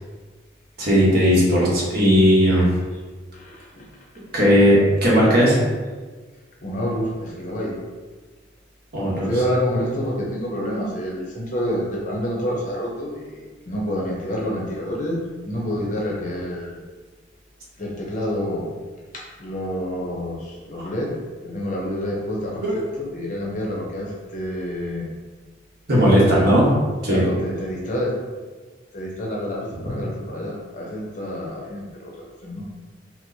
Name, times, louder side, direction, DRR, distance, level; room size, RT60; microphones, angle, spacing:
voice 1, 0.8-2.7 4.3-5.6 8.9-9.3 20.8-20.9 22.6-22.7 25.9-26.7 27.0-27.2, equal, 55° right, -6 dB, 1.0 m, -16 dB
voice 2, 3.3-3.9 6.6-7.7 9.0-16.8 17.8-18.7 19.1-21.1 21.4-25.1 25.9-26.5 27.1-28.1 28.9-32.1 32.4-32.6, equal, 40° left, -3 dB, 0.6 m, -28 dB
4.3 x 2.0 x 2.7 m, 1.4 s
head